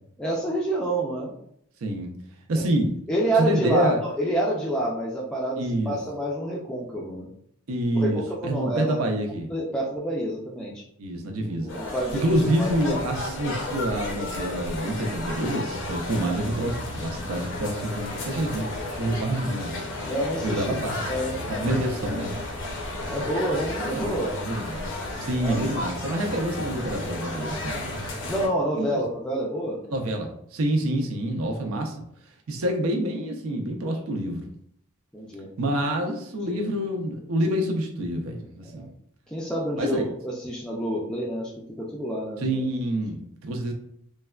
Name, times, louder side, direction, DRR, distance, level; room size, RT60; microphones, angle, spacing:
voice 1, 0.2-1.3 2.5-2.7 3.1-7.3 7.9-9.0 9.5-10.8 11.4-12.2 12.6-12.7 17.7-18.2 20.0-20.7 21.0-22.2 23.1-24.4 25.4-25.6 28.3-29.8 35.1-35.8 36.5-36.7 38.7-38.9 39.3-41.5 41.8-42.6, right 1 dB, 5° left, -4 dB, 0.3 m, -28 dB
voice 2, 1.8-2.1 2.5-2.9 3.4-4.0 5.6-6.0 7.7-9.5 11.0-11.7 12.1-18.7 18.9-19.9 20.4-21.0 21.5-22.3 23.8-24.9 25.2-28.0 28.8-29.0 29.9-32.0 32.5-34.5 35.6-38.9 39.8-40.1 42.4-43.7, right 1 dB, 85° right, 3 dB, 0.5 m, -27 dB
sound 1, 11.7-28.5, left 2 dB, 65° left, 0.6 m, -33 dB
3.2 x 2.1 x 2.3 m, 0.69 s
head